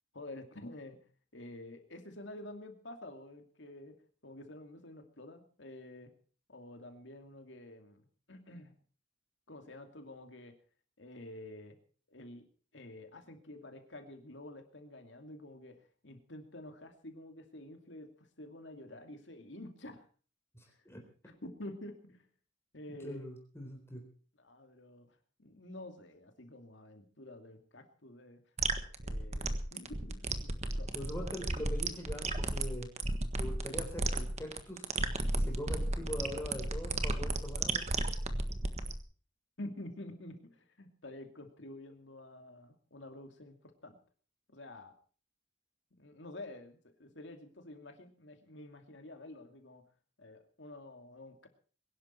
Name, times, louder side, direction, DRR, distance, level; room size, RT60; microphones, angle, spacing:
voice 1, 0.1-1.0 1.3-6.1 6.5-8.8 9.5-10.5 11.0-11.8 12.1-12.5 12.7-20.0 20.7-20.8 21.2-22.3 22.7-23.3 24.4-28.4 29.0-30.9 31.2-31.3 39.6-44.0 44.5-44.9 46.0-49.8 50.2-51.5, left 1 dB, 65° left, 6 dB, 2.6 m, -49 dB
voice 2, 20.5-21.0 23.0-24.0 30.9-32.9 33.4-34.8 35.3-37.9, equal, 15° left, 2 dB, 4.0 m, -42 dB
sound 1, 28.6-39.0, right 2 dB, 35° right, 1.5 m, -34 dB
22.0 x 11.5 x 4.5 m, 0.41 s
head